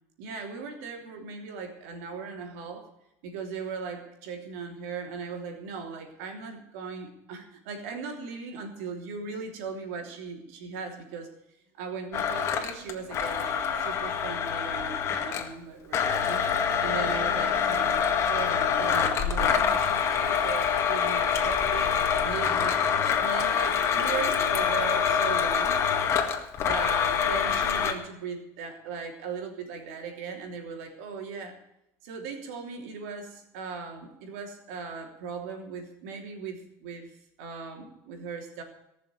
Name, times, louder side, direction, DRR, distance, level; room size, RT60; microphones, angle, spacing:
voice 1, 0.2-2.9 3.2-11.3 11.7-21.9 22.2-22.8 23.2-25.8 26.6-31.6 32.0-38.6, right 5 dB, 85° right, 3 dB, 3.3 m, -38 dB
Domestic sounds home sounds, 12.1-15.5 15.9-27.9, left 7 dB, 40° left, 1.9 m, -26 dB
18.5 x 6.8 x 7.9 m, 0.85 s
cardioid pair, 135°, 7 cm